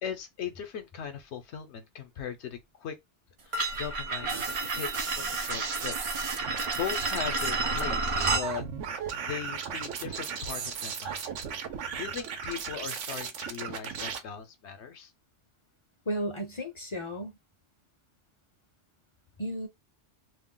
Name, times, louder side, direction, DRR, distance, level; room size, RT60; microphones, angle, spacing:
voice 1, 0.0-3.0 3.4-6.2 6.7-8.6 9.2-11.2 12.0-15.1, left 7 dB, 70° left, 0.9 m, -39 dB
sound 1, 3.5-8.5, right 3 dB, 55° right, 0.3 m, -31 dB
sound 2, 4.3-14.2, right 7 dB, 85° right, 1.0 m, -36 dB
voice 2, 16.1-17.3 19.4-19.7, equal, 35° left, 0.5 m, -33 dB
2.5 x 2.1 x 3.7 m
omnidirectional pair, 1.2 m